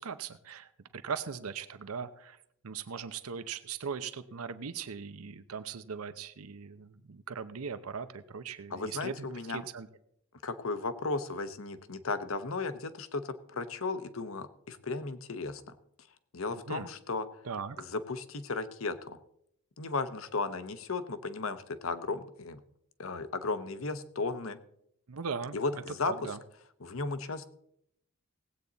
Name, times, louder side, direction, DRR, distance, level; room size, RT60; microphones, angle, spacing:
voice 1, 0.0-2.4 2.6-9.9 16.7-16.9 17.4-17.8 25.1-26.4, right 6 dB, 85° right, 12 dB, 0.7 m, -39 dB
voice 2, 8.7-9.6 10.4-15.8 16.3-17.3 17.8-19.2 19.8-22.6 23.0-24.6 25.5-26.3 26.8-27.5, left 3 dB, 70° left, 12 dB, 0.9 m, -35 dB
18.0 x 8.6 x 4.0 m, 0.72 s
head